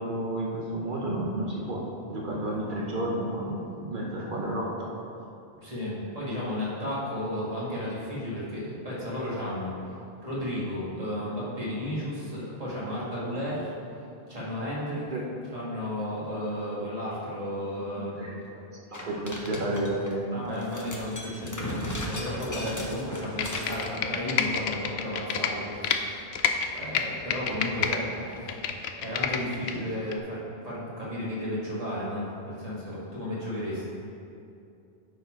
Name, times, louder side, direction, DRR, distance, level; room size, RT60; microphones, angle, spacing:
voice 1, 0.0-4.9 15.1-15.2 17.9-20.5 22.7-22.8, right 1 dB, 55° right, -3 dB, 1.0 m, -32 dB
voice 2, 5.6-9.7 10.2-13.7 14.3-15.1 15.5-18.3 20.3-26.2 26.7-28.6 29.0-33.9, left 1 dB, 35° right, -8 dB, 2.1 m, -33 dB
sound 1, 18.9-20.1 20.6-23.8, left 1 dB, 20° left, 0.7 m, -36 dB
Computer keyboard, 23.2-26.0 26.3-28.0 28.3-29.7 30.1-30.2, left 7 dB, 85° left, 0.8 m, -28 dB
9.7 x 4.6 x 4.5 m, 2.6 s
omnidirectional pair, 1.0 m